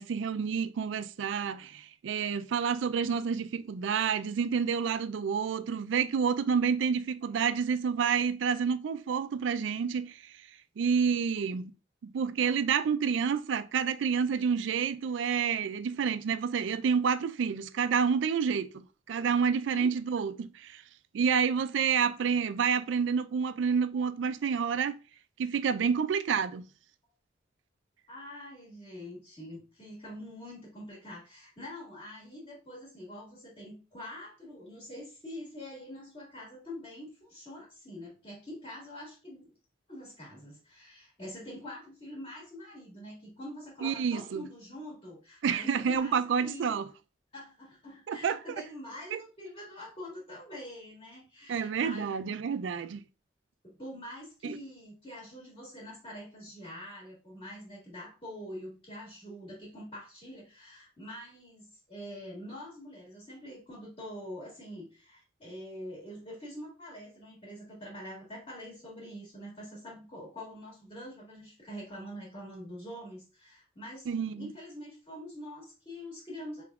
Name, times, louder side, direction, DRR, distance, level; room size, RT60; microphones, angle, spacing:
voice 1, 0.0-10.3 10.8-11.7 12.0-20.8 21.1-24.9 25.4-26.7 43.8-44.4 45.4-46.9 48.1-48.4 49.1-49.2 51.5-53.0 54.4-54.6 74.1-74.5, right 6 dB, 85° right, 0.4 m, -29 dB
voice 2, 28.1-39.5 39.9-46.8 47.3-52.1 53.6-76.6, equal, 30° left, 1.7 m, -45 dB
4.8 x 3.5 x 2.3 m
head